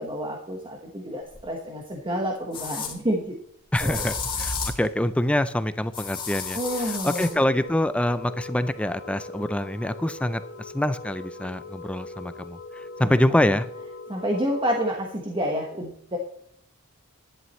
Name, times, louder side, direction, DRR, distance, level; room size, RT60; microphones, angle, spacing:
voice 1, 0.0-3.3 3.8-4.1 6.5-7.4 13.0-13.2 13.4-13.5 14.1-16.2, equal, 25° right, 0 dB, 1.2 m, -29 dB
sound 1, 1.3-1.4 2.5-2.9 3.7-4.9 5.9-7.3, left 5 dB, 20° left, 2.5 m, -31 dB
voice 2, 3.7-12.6 13.0-13.7, left 1 dB, 5° left, 12 dB, 0.4 m, -25 dB
sound 2, 6.6-14.8, left 3 dB, 60° left, 1.0 m, -41 dB
11.0 x 11.0 x 3.1 m, 0.71 s
head